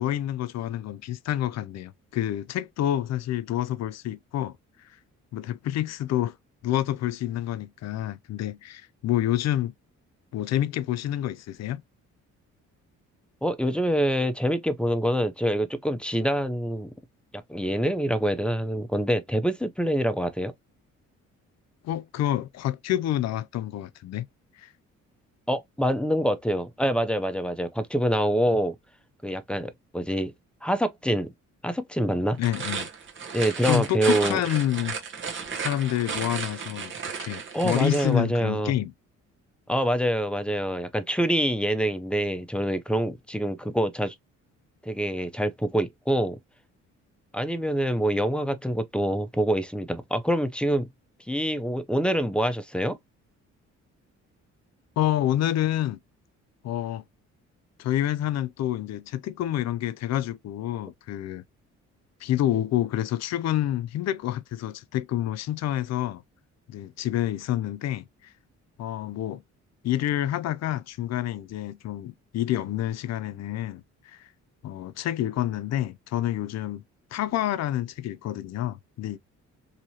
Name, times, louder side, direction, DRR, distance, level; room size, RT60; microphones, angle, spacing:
voice 1, 0.0-4.5 5.3-6.4 6.6-9.7 10.3-11.8 21.8-24.3 24.6-24.7 32.4-32.9 33.6-35.0 35.6-36.9 37.2-38.9 55.0-56.0 56.6-57.0 57.8-61.4 62.2-66.2 66.7-68.1 68.8-69.4 69.8-74.3 74.6-76.8 77.1-79.2, left 12 dB, 60° left, 0.4 m, -28 dB
voice 2, 13.4-16.9 17.3-20.5 25.5-28.8 29.2-30.3 30.6-31.3 31.6-32.4 33.3-34.4 37.5-38.7 39.7-44.1 44.9-46.4 47.3-50.9 51.3-53.0, equal, 5° left, 0.4 m, -25 dB
sound 1, 32.3-38.1, right 6 dB, 40° right, 0.9 m, -34 dB
2.9 x 2.7 x 2.7 m
cardioid pair, 90°, 30 cm